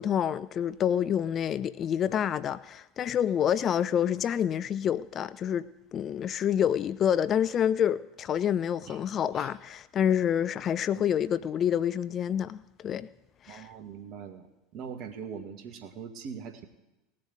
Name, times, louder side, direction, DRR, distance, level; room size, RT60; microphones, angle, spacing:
voice 1, 0.0-5.7 5.9-13.1 13.4-13.7, left 9 dB, 35° left, 0.5 m, -27 dB
voice 2, 13.5-14.5 14.7-16.7, right 6 dB, 45° right, 2.3 m, -41 dB
18.5 x 7.6 x 9.5 m
figure-of-eight pair, 75°, 0 cm